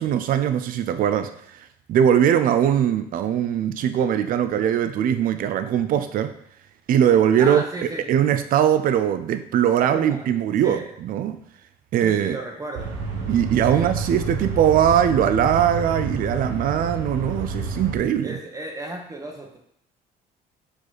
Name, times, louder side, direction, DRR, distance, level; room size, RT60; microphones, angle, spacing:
voice 1, 0.0-6.3 6.9-7.6 8.1-11.4 11.9-12.4 13.3-18.3, right 9 dB, 55° right, 10 dB, 0.5 m, -21 dB
voice 2, 7.4-8.1 9.8-10.4 10.6-10.9 12.0-12.9 13.6-14.0 18.2-19.6, right 2 dB, 20° right, 1 dB, 1.0 m, -34 dB
sound 1, 12.7-18.0, right 3 dB, 85° right, 1.3 m, -29 dB
5.1 x 4.7 x 4.1 m, 0.72 s
cardioid pair, 110°, 17 cm